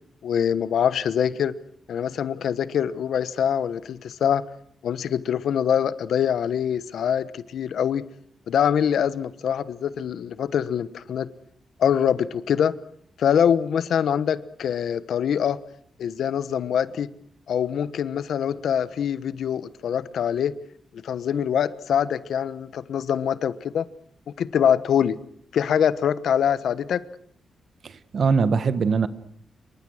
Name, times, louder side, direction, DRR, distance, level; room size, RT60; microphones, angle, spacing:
voice 1, 0.2-1.6 1.9-4.4 4.8-8.0 8.5-11.3 11.8-12.8 13.2-15.6 16.0-17.1 17.5-20.6 20.9-23.9 24.4-25.2 25.5-27.0, left 8 dB, 75° left, 15 dB, 1.1 m, -24 dB
voice 2, 27.8-29.1, right 5 dB, 50° right, 14 dB, 1.3 m, -22 dB
27.0 x 23.5 x 6.5 m, 0.63 s
wide cardioid pair, 155°, 0 cm